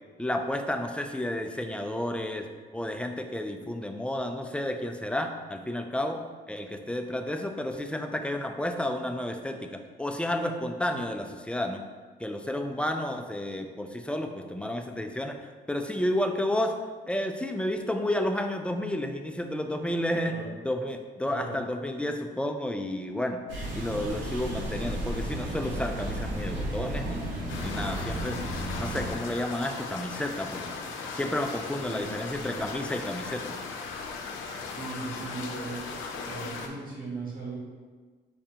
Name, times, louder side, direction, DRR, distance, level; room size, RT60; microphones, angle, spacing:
voice 1, 0.2-2.5 2.7-11.8 12.2-16.7 17.1-23.4 23.7-27.3 27.6-28.4 28.8-30.7 31.1-33.6, left 1 dB, 5° left, 5 dB, 0.3 m, -31 dB
voice 2, 21.2-21.5 31.9-32.6 34.8-37.6, right 3 dB, 45° right, -6 dB, 1.3 m, -38 dB
sound 1, 23.5-29.1, right 1 dB, 75° right, 1.4 m, -33 dB
sound 2, 27.5-36.7, left 4 dB, 85° left, 0.6 m, -38 dB
4.9 x 3.3 x 2.8 m, 1.4 s
cardioid pair, 90°, 20 cm